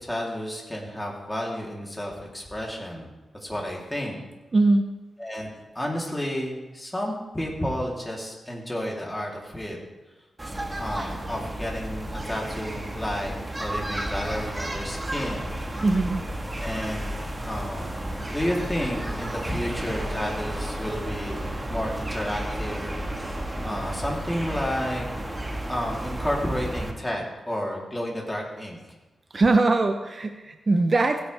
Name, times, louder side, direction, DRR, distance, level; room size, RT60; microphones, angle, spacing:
voice 1, 0.0-3.1 3.4-4.2 5.2-5.5 5.7-9.8 10.7-15.8 16.6-22.8 23.2-23.3 23.6-25.1 25.7-28.8, equal, 10° left, -2 dB, 3.3 m, -31 dB
voice 2, 4.5-4.9 15.8-16.2 29.3-31.2, right 2 dB, 40° right, 6 dB, 0.8 m, -21 dB
sound 1, 10.4-26.9, right 1 dB, 20° right, 1.6 m, -32 dB
16.0 x 9.4 x 3.5 m, 1.1 s
cardioid pair, 70°, 0 cm